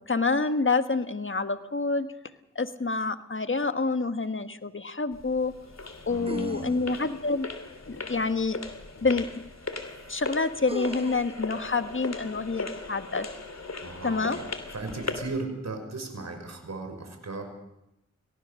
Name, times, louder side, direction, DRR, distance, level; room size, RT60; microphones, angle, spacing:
voice 1, 0.1-2.1 2.5-5.5 6.1-7.5 7.9-8.6 9.0-9.3 10.1-13.3 14.0-14.4, left 3 dB, 40° left, 10 dB, 1.6 m, -27 dB
sound 1, 4.1-4.2 6.3-7.2 9.1-9.2 10.7-11.4, right 2 dB, 20° right, 1.0 m, -38 dB
sound 2, 5.1-15.4, left 3 dB, 60° left, 3.0 m, -38 dB
voice 2, 6.1-6.8 13.8-17.4, right 3 dB, 65° right, 5 dB, 5.6 m, -37 dB
25.0 x 18.0 x 6.5 m, 0.84 s
cardioid pair, 45°, 30 cm